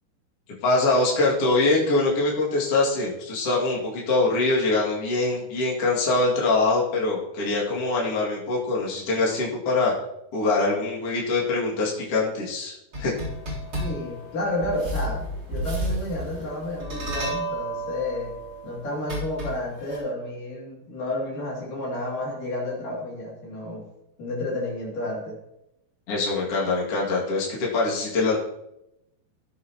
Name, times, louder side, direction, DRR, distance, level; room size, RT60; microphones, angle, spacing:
voice 1, 0.6-9.9 10.3-13.1 26.1-28.4, left 3 dB, 45° left, -5 dB, 2.8 m, -23 dB
sound 1, 12.9-20.0, right 1 dB, 35° right, 4.1 m, -32 dB
voice 2, 13.8-18.3 18.6-23.8 24.2-25.4, left 1 dB, 60° left, -3 dB, 4.2 m, -31 dB
18.0 x 7.9 x 3.0 m, 0.84 s
omnidirectional pair, 4.5 m